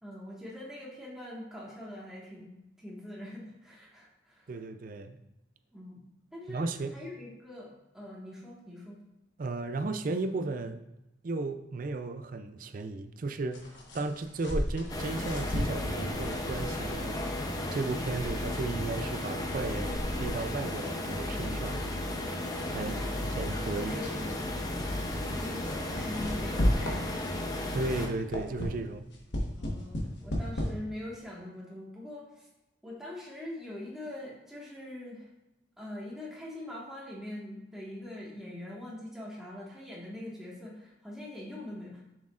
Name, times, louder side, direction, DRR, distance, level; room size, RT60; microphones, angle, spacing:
voice 1, 0.0-2.5 2.8-4.5 5.7-6.6 6.9-9.0 22.7-23.4 23.7-24.3 25.2-27.3 29.5-32.5 32.8-35.3 35.8-42.0, left 1 dB, 5° right, -5 dB, 1.6 m, -43 dB
voice 2, 4.5-5.2 6.5-6.9 9.4-10.8 11.2-17.3 17.7-21.9 22.7-23.0 23.2-24.0 27.7-29.1, right 3 dB, 45° right, 9 dB, 0.4 m, -35 dB
sound 1, 13.5-27.5 27.9-30.7, equal, 70° left, 1.2 m, -36 dB
sound 2, 14.9-28.1, left 1 dB, 20° left, 0.6 m, -34 dB
7.2 x 6.2 x 2.5 m, 0.96 s
head